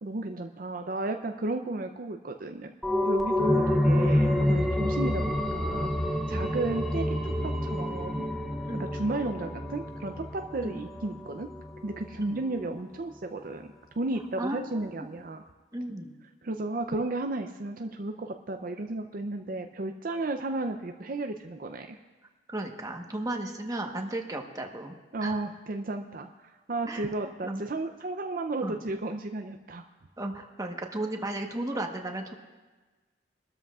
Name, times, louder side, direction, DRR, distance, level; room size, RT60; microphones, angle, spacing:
voice 1, 0.0-2.7 3.0-5.9 6.3-7.2 7.4-8.3 8.9-11.5 11.8-15.4 16.4-22.0 25.1-29.8, right 2 dB, 50° right, 5 dB, 0.5 m, -33 dB
sound 1, 2.8-12.2 12.5-12.6, left 1 dB, ahead, 0.7 m, -28 dB
voice 2, 14.4-15.1 15.7-16.1 22.5-24.9 25.2-25.4 26.9-27.1 27.4-27.6 28.6-28.8 30.2-32.3, right 1 dB, 20° right, 2 dB, 1.1 m, -34 dB
24.0 x 13.0 x 2.4 m, 1.3 s
head